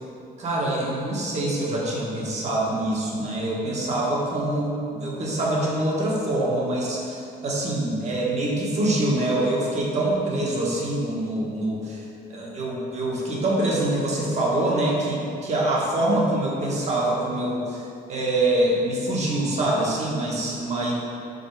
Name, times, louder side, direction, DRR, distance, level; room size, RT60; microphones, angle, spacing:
voice 1, 0.4-12.0 12.3-17.8 18.1-20.9, right 1 dB, 40° right, -4 dB, 1.4 m, -25 dB
5.3 x 4.1 x 4.7 m, 2.5 s
cardioid pair, 110°, 17 cm